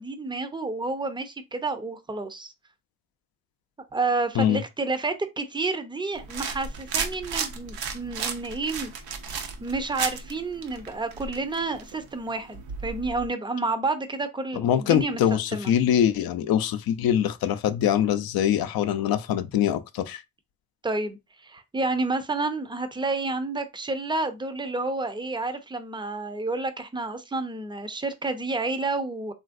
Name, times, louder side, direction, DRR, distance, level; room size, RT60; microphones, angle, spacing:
voice 1, 0.0-2.5 3.9-8.9 9.6-15.7 20.8-21.2 21.4-29.3, right 3 dB, 15° right, 0.5 m, -30 dB
sound 1, 6.2-13.3, right 6 dB, 75° right, 0.7 m, -34 dB
voice 2, 14.6-20.2, left 10 dB, 75° left, 0.5 m, -23 dB
3.1 x 2.5 x 2.5 m
cardioid pair, 70°, 37 cm